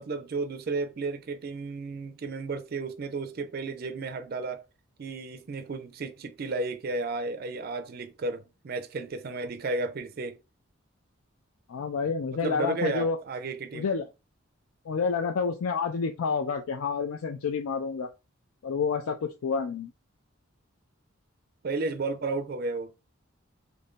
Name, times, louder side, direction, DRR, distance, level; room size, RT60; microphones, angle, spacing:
voice 1, 0.0-4.6 5.0-10.4 12.3-13.9 21.6-22.9, right 3 dB, 45° right, 0.4 m, -33 dB
voice 2, 11.7-13.2 13.7-14.1 14.9-18.1 18.6-19.9, left 5 dB, 90° left, 0.4 m, -29 dB
2.6 x 2.5 x 3.6 m
head